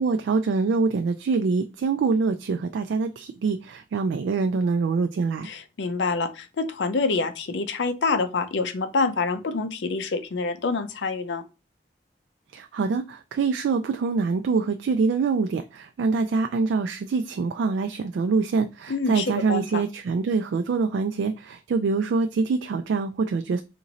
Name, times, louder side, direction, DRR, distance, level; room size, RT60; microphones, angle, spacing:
voice 1, 0.0-5.5 12.5-23.6, right 4 dB, 85° right, 0.3 m, -25 dB
voice 2, 5.4-11.4 18.9-19.8, left 4 dB, 85° left, 0.5 m, -26 dB
2.9 x 2.6 x 3.9 m
head